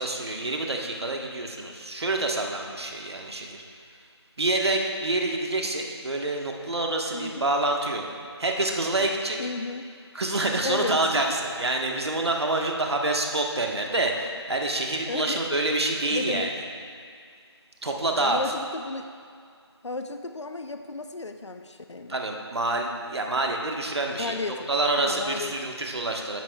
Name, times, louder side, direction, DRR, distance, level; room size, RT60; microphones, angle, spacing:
voice 1, 0.0-3.6 4.4-8.0 8.4-9.4 10.1-16.5 17.8-18.4 22.1-24.3 24.7-26.4, right 2 dB, 65° right, 1 dB, 1.4 m, -27 dB
voice 2, 7.1-7.5 9.4-9.9 10.6-11.2 15.0-15.4 16.1-16.5 18.1-19.1 19.8-22.2 24.2-24.7 25.0-25.5, left 3 dB, 80° left, 7 dB, 0.6 m, -33 dB
14.5 x 11.0 x 2.4 m, 2.2 s
figure-of-eight pair, 165°, 15 cm